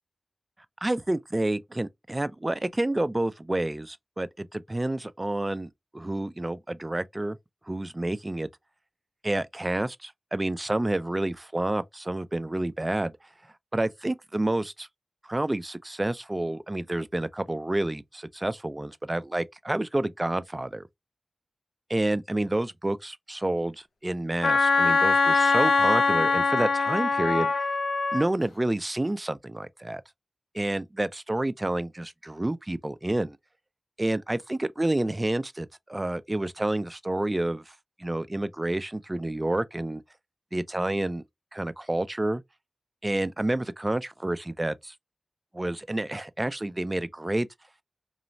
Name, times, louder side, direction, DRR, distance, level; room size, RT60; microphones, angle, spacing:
voice 1, 0.8-7.4 7.7-8.5 9.2-13.1 13.7-14.9 15.2-20.8 21.9-27.5 28.1-30.0 30.5-33.4 34.0-37.7 38.0-40.0 40.5-41.2 41.5-42.4 43.0-44.9 45.5-47.5, right 1 dB, 25° right, 0.3 m, -29 dB
Wind instrument woodwind instrument, 24.4-28.3, left 4 dB, 90° left, 0.4 m, -22 dB
3.0 x 2.0 x 2.6 m
cardioid pair, 45°, 0 cm